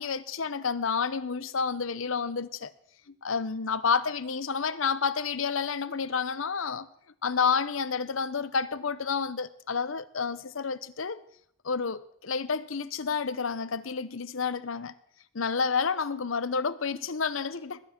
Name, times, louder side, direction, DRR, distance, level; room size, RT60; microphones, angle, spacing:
voice 1, 0.0-2.7 3.2-6.9 7.2-11.2 11.6-14.9 15.3-17.8, left 5 dB, 75° left, 0.8 m, -30 dB
20.0 x 10.0 x 5.9 m
head